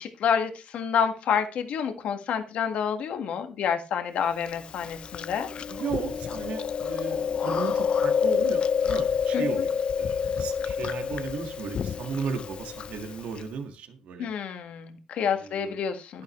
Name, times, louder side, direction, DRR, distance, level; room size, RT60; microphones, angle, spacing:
voice 1, 0.0-5.5 9.3-9.4 14.2-16.2, left 7 dB, 70° left, 6 dB, 1.7 m, -28 dB
Chewing mastication, 4.5-13.4, left 7 dB, 50° left, 0.6 m, -28 dB
voice 2, 5.7-14.3 15.3-15.8 16.1-16.2, right 5 dB, 75° right, 6 dB, 1.7 m, -35 dB
11.5 x 10.5 x 3.2 m, 0.30 s
cardioid pair, 95°, 2 cm